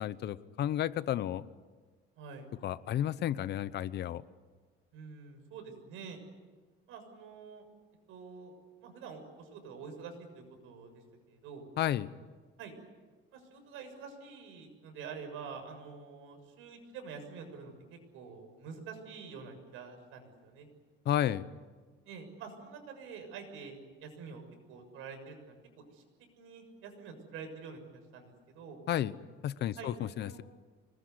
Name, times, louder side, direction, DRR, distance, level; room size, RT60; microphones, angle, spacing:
voice 1, 0.0-1.4 2.6-4.2 11.8-12.1 21.0-21.4 28.9-29.1 29.4-30.4, left 11 dB, 55° left, 16 dB, 1.0 m, -32 dB
voice 2, 2.2-2.5 4.9-6.2 6.9-7.7 8.1-8.5 8.8-10.9 11.3-11.7 12.6-12.7 13.3-20.7 22.0-24.4 24.7-26.0 26.4-28.8 29.8-29.9 30.2-30.4, right 5 dB, 80° right, 5 dB, 6.9 m, -47 dB
26.0 x 20.5 x 9.7 m, 1.4 s
cardioid pair, 145°, 21 cm